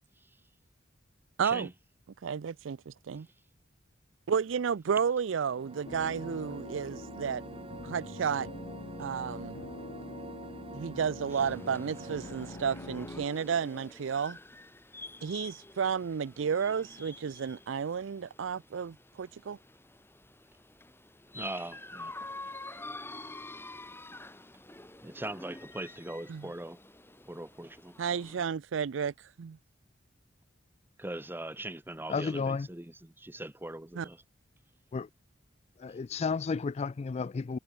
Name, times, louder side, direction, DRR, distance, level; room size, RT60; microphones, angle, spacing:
voice 1, 1.4-1.7 2.2-3.3 4.3-7.4 7.8-8.5 9.0-9.6 10.7-14.4 15.2-19.6 26.3-26.5 28.0-29.6 34.0-34.1, right 7 dB, 75° right, 0.4 m, -32 dB
sound 1, 5.3-13.0, right 2 dB, 30° right, 3.8 m, -47 dB
sound 2, 5.9-13.2, left 1 dB, 65° left, 2.0 m, -45 dB
sound 3, 11.3-28.5, left 2 dB, 10° left, 3.6 m, -48 dB
voice 2, 21.3-22.1 25.0-26.8 27.2-27.9 31.0-34.2, right 1 dB, 10° right, 1.2 m, -41 dB
voice 3, 32.1-32.7 34.9-35.1 35.8-37.6, left 5 dB, 35° left, 0.3 m, -32 dB
head